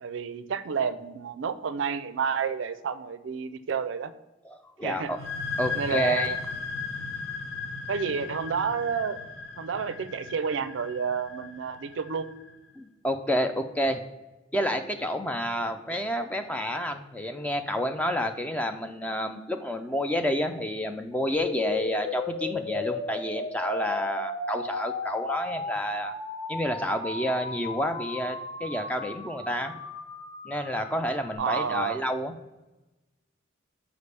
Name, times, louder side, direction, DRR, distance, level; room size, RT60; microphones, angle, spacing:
voice 1, 0.0-4.1 4.8-5.1 5.7-6.4 7.9-9.2 9.6-12.3 31.4-32.0, right 6 dB, 65° right, 12 dB, 0.4 m, -30 dB
voice 2, 4.4-5.2 5.6-6.3 12.8-14.0 14.5-26.1 26.5-29.8 30.4-32.3, equal, 5° left, 6 dB, 0.3 m, -29 dB
sound 1, 5.0-12.5, left 4 dB, 80° left, 0.8 m, -36 dB
sound 2, 21.4-31.4, left 2 dB, 30° left, 0.7 m, -35 dB
6.7 x 4.9 x 3.3 m, 1.1 s
head